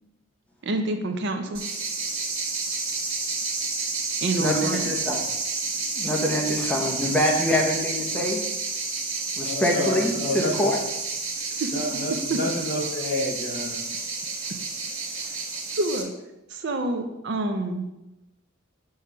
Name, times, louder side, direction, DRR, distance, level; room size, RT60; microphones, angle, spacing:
voice 1, 0.6-1.6 4.2-4.9 11.6-11.7 12.3-12.4 15.8-16.1 16.5-17.8, right 2 dB, 55° right, 6 dB, 0.5 m, -27 dB
sound 1, 1.5-16.0, right 4 dB, 80° right, 1.3 m, -30 dB
voice 2, 4.4-5.3 5.9-8.4 9.4-10.8, left 1 dB, 5° left, -1 dB, 0.8 m, -25 dB
voice 3, 9.4-10.7 11.7-13.8, left 1 dB, 50° left, -3 dB, 1.9 m, -29 dB
5.9 x 3.2 x 5.6 m, 0.94 s
head